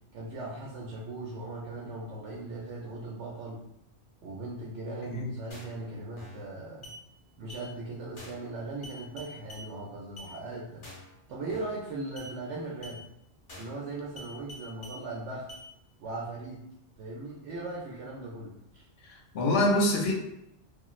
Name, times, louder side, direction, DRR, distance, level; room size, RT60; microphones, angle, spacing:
voice 1, 0.1-3.6 4.2-6.9 7.4-10.9 11.3-13.0 13.6-15.5 16.0-16.6 17.0-18.8, right 2 dB, 80° right, -3 dB, 0.9 m, -39 dB
sound 1, 5.5-5.8 6.2-6.5 6.8-7.0 7.5-7.7 8.2-8.5 8.8-9.7 10.2-10.3 10.8-11.1 11.5-11.8 12.2-12.3 12.8-13.0 13.5-13.8 14.2-15.0 15.5-15.7, left 1 dB, 35° left, 0.6 m, -46 dB
voice 2, 19.1-20.1, left 1 dB, 65° left, 0 dB, 0.8 m, -26 dB
3.0 x 2.4 x 2.4 m, 0.80 s
omnidirectional pair, 1.2 m